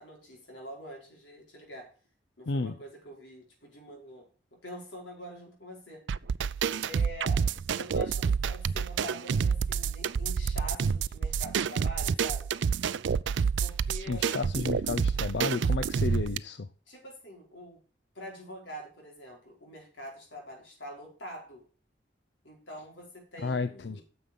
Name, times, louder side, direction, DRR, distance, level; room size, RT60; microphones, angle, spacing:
voice 1, 0.0-1.9 2.4-4.3 4.5-6.0 6.8-7.5 7.7-12.5 13.6-14.2 16.9-17.8 18.1-21.6 22.4-24.0, equal, 90° left, 0 dB, 4.9 m, -45 dB
sound 1, 6.1-16.4, right 6 dB, 75° right, 0.4 m, -28 dB
voice 2, 14.1-16.7 23.4-24.0, left 3 dB, 65° left, 11 dB, 0.5 m, -32 dB
9.5 x 7.0 x 5.2 m, 0.40 s
head